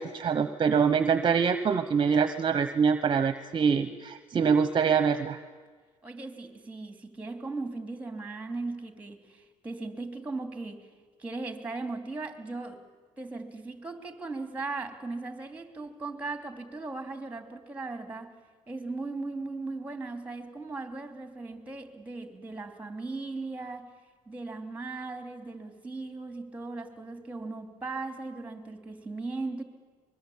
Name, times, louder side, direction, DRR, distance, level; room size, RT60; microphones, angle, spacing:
voice 1, 0.0-5.4, right 6 dB, 35° right, 10 dB, 1.1 m, -25 dB
voice 2, 6.0-10.9 11.2-12.8 13.2-18.3 18.7-23.9 24.3-29.6, right 3 dB, 10° right, 7 dB, 3.0 m, -38 dB
24.0 x 22.0 x 8.7 m, 1.5 s
cardioid pair, 105°, 13 cm